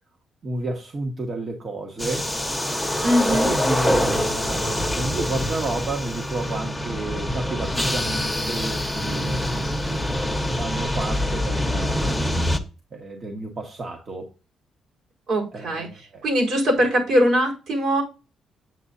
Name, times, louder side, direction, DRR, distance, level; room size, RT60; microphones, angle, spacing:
voice 1, 0.4-2.3 3.3-9.5 10.6-12.3 12.9-14.3 15.5-16.2, right 2 dB, 45° right, 2 dB, 1.5 m, -31 dB
sound 1, 2.0-12.6, left 1 dB, ahead, 1.1 m, -25 dB
voice 2, 3.0-3.5 15.3-15.9 16.2-18.0, equal, 70° right, 0 dB, 4.7 m, -21 dB
8.2 x 8.1 x 2.8 m, 0.31 s
cardioid pair, 90°, 0 cm